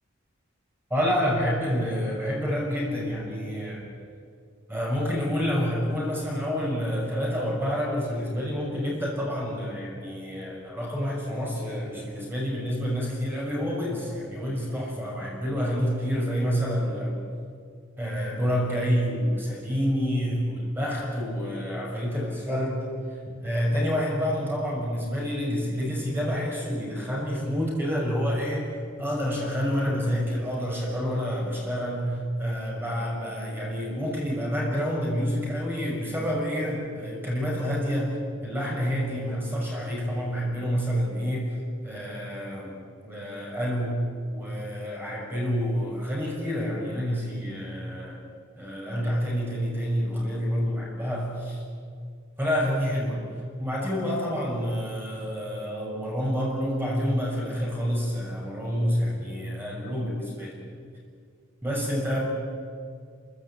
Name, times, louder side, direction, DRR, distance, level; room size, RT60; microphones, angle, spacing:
voice 1, 0.9-3.8 4.7-17.1 18.0-22.8 23.4-41.5 41.8-42.8 43.0-44.0 44.3-48.2 48.6-51.6 52.4-53.2 53.6-60.5 61.6-62.2, equal, 10° right, -3 dB, 6.0 m, -28 dB
30.0 x 15.5 x 8.7 m, 2.2 s
head